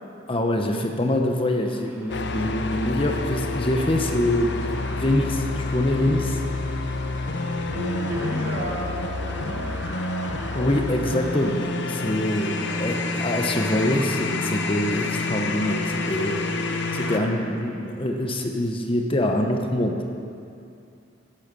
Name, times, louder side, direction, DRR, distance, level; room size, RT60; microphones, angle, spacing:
voice 1, 0.3-4.5 4.9-6.4 10.5-11.6 11.9-16.4 16.9-19.9, left 1 dB, 30° left, 3 dB, 1.1 m, -24 dB
sound 1, 1.5-17.3, equal, 10° right, 1.8 m, -40 dB
sound 2, 2.1-17.2, left 3 dB, 65° left, 0.8 m, -29 dB
voice 2, 2.2-2.5 7.7-9.6 12.6-13.2, equal, 70° right, -4 dB, 3.7 m, -33 dB
13.5 x 11.5 x 6.9 m, 2.5 s
head